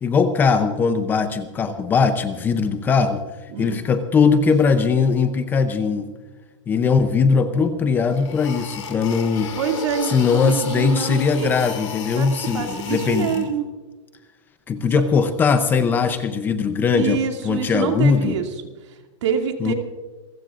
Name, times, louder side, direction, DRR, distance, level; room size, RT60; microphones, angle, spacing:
voice 1, 0.0-3.2 3.6-6.1 6.7-9.5 10.0-13.5 14.7-18.4 19.6-19.7, left 5 dB, 10° left, 9 dB, 0.6 m, -20 dB
voice 2, 3.5-3.8 9.5-11.5 12.1-13.6 16.9-18.5 18.9-19.7, right 7 dB, 65° right, 4 dB, 2.6 m, -26 dB
sound 1, 7.6-7.7 8.1-13.4, left 5 dB, 75° left, 4.5 m, -34 dB
28.0 x 15.5 x 2.5 m, 1.3 s
supercardioid pair, 170°, 16 cm